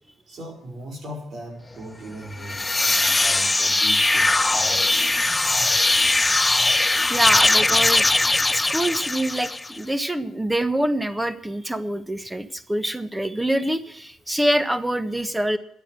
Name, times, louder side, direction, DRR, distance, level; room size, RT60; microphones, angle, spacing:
voice 1, 0.3-6.4 8.5-8.9, right 1 dB, 55° right, -2 dB, 4.8 m, -40 dB
sound 1, 2.3-9.8, left 2 dB, 15° left, 0.4 m, -20 dB
voice 2, 7.1-8.1 8.5-15.6, right 1 dB, 10° right, 12 dB, 1.3 m, -25 dB
11.5 x 9.1 x 7.6 m, 0.73 s
supercardioid pair, 65°, 0 cm